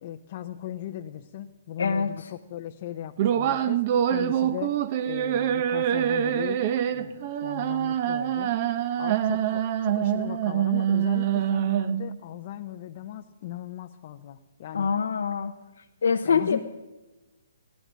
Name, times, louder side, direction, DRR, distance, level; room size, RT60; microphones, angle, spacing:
voice 1, 0.0-3.8 4.1-4.7 5.0-6.6 6.9-8.5 9.0-14.9 16.2-16.6, left 12 dB, 40° left, 6 dB, 0.6 m, -38 dB
voice 2, 1.8-2.3 14.7-15.5 16.0-16.6, left 6 dB, 80° left, 5 dB, 0.7 m, -24 dB
sound 1, 3.2-12.2, right 10 dB, 40° right, 0.7 m, -25 dB
16.0 x 11.5 x 6.2 m, 1.1 s
hypercardioid pair, 155°, 0 cm